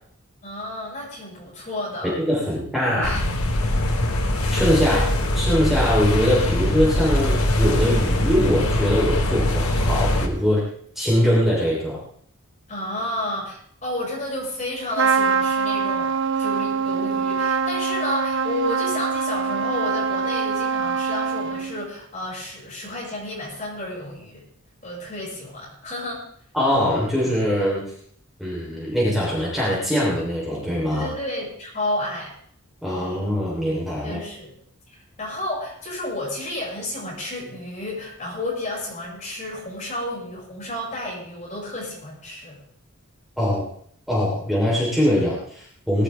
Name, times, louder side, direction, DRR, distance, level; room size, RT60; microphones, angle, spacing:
voice 1, 0.4-2.1 2.9-3.2 4.8-5.1 12.7-16.1 16.4-24.4 24.8-26.2 30.9-32.4 34.0-34.5 34.9-42.6, left 1 dB, 35° left, -5 dB, 6.1 m, -31 dB
voice 2, 2.0-3.1 4.5-5.0 5.4-10.6 11.0-12.0 26.5-27.8 28.4-31.1 32.8-34.2 43.4-43.6 44.1-46.0, equal, ahead, -6 dB, 3.4 m, -22 dB
sound 1, 3.0-10.3, left 1 dB, 85° left, 1.5 m, -22 dB
Trumpet, 14.9-21.9, right 5 dB, 55° right, 0.6 m, -24 dB
19.5 x 11.5 x 3.4 m, 0.63 s
head